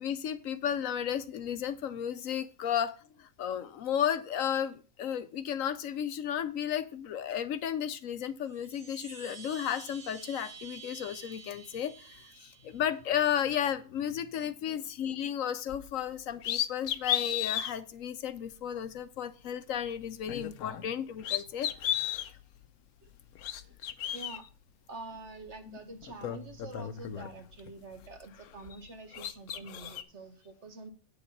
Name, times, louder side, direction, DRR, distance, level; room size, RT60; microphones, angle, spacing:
voice 1, 0.0-22.2, left 9 dB, 70° left, 13 dB, 1.0 m, -34 dB
Chime, 8.4-13.1, right 6 dB, 70° right, 1.9 m, -49 dB
sound 1, 15.7-15.9 16.4-17.7 18.4-18.5 20.2-20.9 21.2-22.3 23.2-24.4 25.5-25.6 26.0-27.7 28.0-28.9 29.1-30.0, left 11 dB, 90° left, 1.2 m, -34 dB
voice 2, 24.1-24.4 24.9-30.9, right 3 dB, 50° right, 8 dB, 1.5 m, -46 dB
9.0 x 6.7 x 5.4 m, 0.35 s
omnidirectional pair, 1.5 m